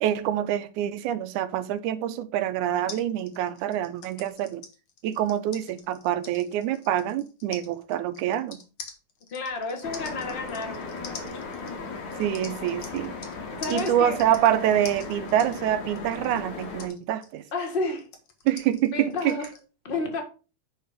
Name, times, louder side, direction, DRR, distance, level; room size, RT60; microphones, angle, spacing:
voice 1, 0.0-4.6 5.0-8.6 12.2-13.1 13.7-17.4 18.5-19.4, right 11 dB, 85° right, 2.1 m, -26 dB
sound 1, 2.9-13.3 13.6-19.6, left 5 dB, 50° left, 1.8 m, -45 dB
voice 2, 9.3-11.4 13.5-14.2 17.5-18.1 18.9-19.4 19.8-20.2, left 3 dB, 25° left, 1.2 m, -31 dB
sound 2, 9.8-16.9, left 4 dB, 75° left, 2.8 m, -37 dB
10.5 x 4.1 x 5.0 m
omnidirectional pair, 3.5 m